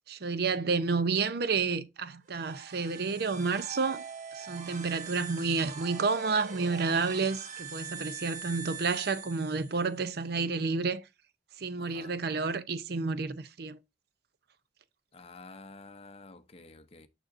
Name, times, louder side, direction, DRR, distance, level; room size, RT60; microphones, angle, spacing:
voice 1, 0.1-4.0 4.3-11.0 11.6-13.8, right 4 dB, 65° right, 0.6 m, -30 dB
sound 1, 2.3-10.0, right 5 dB, 45° right, 1.4 m, -43 dB
voice 2, 11.8-12.2 15.1-17.1, left 3 dB, 35° left, 0.7 m, -50 dB
6.6 x 6.3 x 2.5 m
head